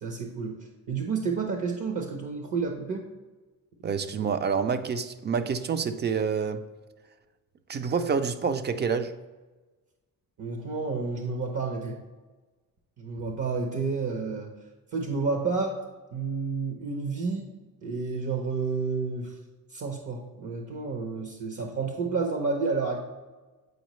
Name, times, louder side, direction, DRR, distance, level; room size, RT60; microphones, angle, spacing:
voice 1, 0.0-3.1 10.4-12.0 13.0-14.5 14.9-15.8 16.1-17.5 17.8-19.3 19.7-23.0, right 4 dB, 55° right, 0.9 m, -30 dB
voice 2, 3.8-6.7 7.7-9.1, right 6 dB, 30° right, 0.4 m, -27 dB
7.9 x 4.8 x 3.1 m
cardioid pair, 115°, 35 cm